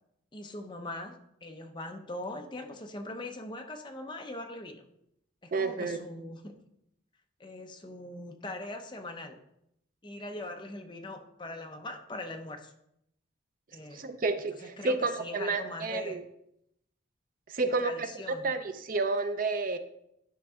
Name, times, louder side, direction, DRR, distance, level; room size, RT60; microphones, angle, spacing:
voice 1, 0.3-4.8 5.4-6.5 7.4-9.4 10.0-12.7 13.7-14.0 14.6-16.2 17.6-18.5, left 2 dB, 25° left, 4 dB, 0.7 m, -41 dB
voice 2, 5.5-6.0 13.9-16.2 17.5-19.8, right 3 dB, 45° right, 9 dB, 0.5 m, -30 dB
10.5 x 5.3 x 3.6 m, 0.78 s
head